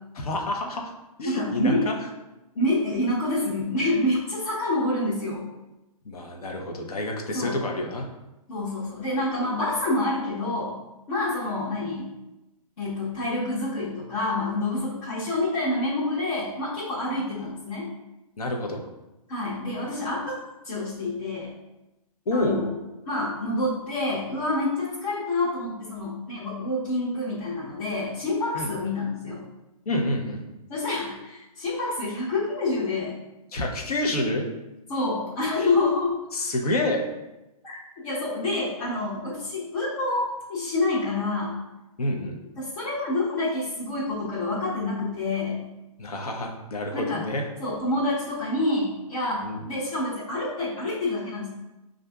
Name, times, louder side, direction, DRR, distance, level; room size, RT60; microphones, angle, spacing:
voice 1, 0.1-0.9 1.2-1.9 6.0-8.1 18.4-18.8 22.3-22.6 28.5-28.7 29.9-30.4 33.5-34.4 35.6-35.7 36.3-37.0 42.0-42.4 46.0-47.4 49.4-49.6, left 1 dB, 75° left, 2 dB, 0.8 m, -28 dB
voice 2, 1.3-1.8 2.5-5.4 7.3-7.6 8.5-10.7 11.1-12.1 12.8-17.9 19.3-20.3 20.6-21.5 22.3-22.7 23.1-29.4 30.7-33.2 34.9-36.1 37.6-37.8 38.0-40.2 40.5-41.6 42.6-45.6 46.9-47.2 47.6-51.5, left 2 dB, 55° left, -9 dB, 1.1 m, -27 dB
5.4 x 2.5 x 2.3 m, 0.98 s
hypercardioid pair, 140°, 19 cm